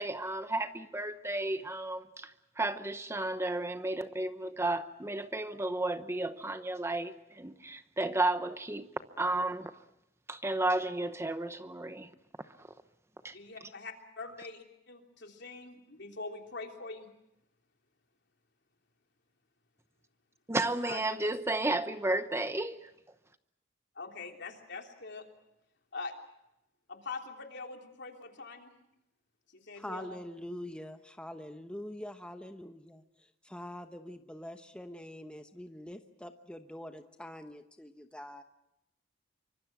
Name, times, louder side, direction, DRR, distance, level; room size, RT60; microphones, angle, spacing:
voice 1, 0.0-8.9 9.2-9.7 10.3-12.1 12.6-12.7 13.2-13.4 20.5-22.9, right 2 dB, 15° right, 0.9 m, -33 dB
voice 2, 13.3-17.1 20.8-21.2 23.9-25.2 25.9-26.1 26.9-28.7 29.5-30.2, left 3 dB, 65° left, 3.3 m, -43 dB
voice 3, 29.8-38.4, left 1 dB, 5° left, 1.0 m, -44 dB
25.5 x 24.5 x 6.0 m
head